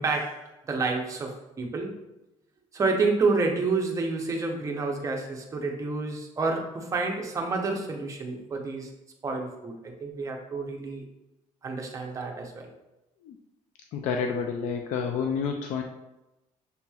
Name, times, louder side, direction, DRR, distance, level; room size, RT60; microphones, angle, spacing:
voice 1, 0.0-2.0 2.7-8.9 9.2-11.0 11.6-12.7, right 3 dB, 20° right, 2 dB, 0.6 m, -29 dB
voice 2, 13.9-15.8, left 6 dB, 60° left, 3 dB, 0.4 m, -29 dB
6.7 x 2.9 x 2.3 m, 0.96 s
cardioid pair, 160°, 14 cm